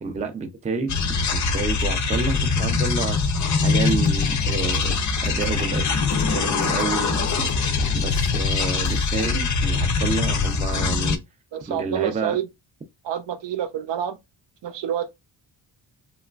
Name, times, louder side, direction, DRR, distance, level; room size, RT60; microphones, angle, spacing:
voice 1, 0.0-3.2 3.6-7.5 7.9-11.2 11.7-12.4, right 4 dB, 15° right, 0.4 m, -29 dB
sound 1, 0.9-11.2, left 4 dB, 40° left, 0.4 m, -23 dB
sound 2, 3.9-9.4, left 7 dB, 85° left, 0.6 m, -39 dB
voice 2, 11.5-12.4 13.0-14.2 14.6-15.1, right 9 dB, 70° right, 0.6 m, -27 dB
3.0 x 2.3 x 2.3 m
wide cardioid pair, 145°, 45 cm